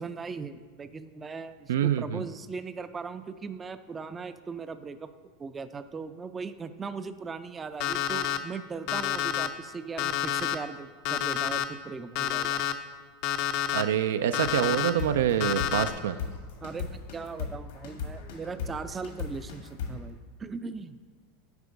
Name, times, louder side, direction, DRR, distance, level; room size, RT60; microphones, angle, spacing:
voice 1, 0.0-5.1 5.4-12.6 16.6-21.0, right 5 dB, 20° right, 11 dB, 0.3 m, -39 dB
voice 2, 1.7-2.2 13.7-16.2, right 10 dB, 90° right, 12 dB, 0.3 m, -26 dB
Alarm, 7.8-8.4 8.9-9.5 10.0-10.5 11.0-11.6 12.1-12.7 13.2-13.8 14.3-14.9 15.4-15.9, left 11 dB, 55° left, 0.5 m, -28 dB
sound 1, 14.4-20.1, left 6 dB, 85° left, 1.6 m, -37 dB
8.1 x 5.0 x 5.1 m, 1.5 s
supercardioid pair, 135°, 0 cm